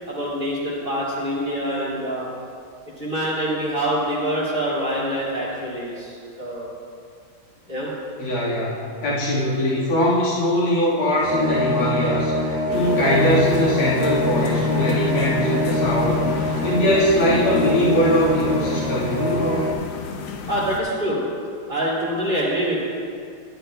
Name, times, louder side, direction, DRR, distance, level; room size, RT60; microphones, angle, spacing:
voice 1, 0.1-2.3 3.0-6.1 6.4-6.7 7.7-7.9 12.7-13.0 20.5-21.2 21.7-22.8, equal, 25° right, -7 dB, 2.5 m, -25 dB
voice 2, 8.2-19.7, left 1 dB, 85° left, -8 dB, 2.6 m, -21 dB
sound 1, 11.2-19.7, left 1 dB, 55° right, 0.4 m, -24 dB
sound 2, 12.7-20.8, left 5 dB, 65° left, 1.1 m, -31 dB
12.5 x 11.5 x 2.2 m, 2.3 s
omnidirectional pair, 2.2 m